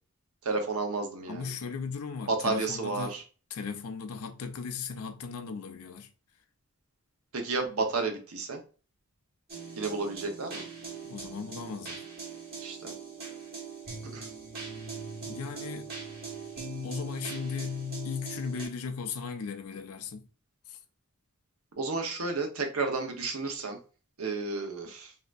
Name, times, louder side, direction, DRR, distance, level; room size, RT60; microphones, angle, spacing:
voice 1, 0.4-1.5 2.3-3.2 7.3-8.6 9.8-10.6 12.6-12.9 14.1-14.3 21.8-23.8 24.2-25.1, right 3 dB, 75° right, 0.9 m, -31 dB
voice 2, 1.3-3.2 3.5-6.1 11.0-12.0 15.2-15.9 16.8-20.3 20.7-20.8, left 5 dB, 80° left, 0.5 m, -37 dB
sound 1, 9.5-18.7, right 2 dB, 45° right, 1.3 m, -40 dB
3.3 x 2.8 x 2.4 m
head